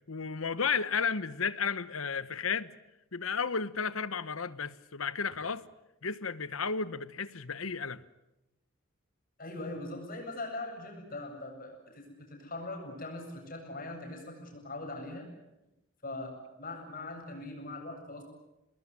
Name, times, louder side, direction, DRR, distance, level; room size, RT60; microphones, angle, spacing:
voice 1, 0.1-2.7 3.1-5.6 6.0-8.0, left 5 dB, 80° left, 16 dB, 1.2 m, -33 dB
voice 2, 9.4-15.3 16.0-18.2, left 2 dB, 45° left, 3 dB, 7.8 m, -41 dB
28.0 x 20.5 x 9.8 m, 0.93 s
head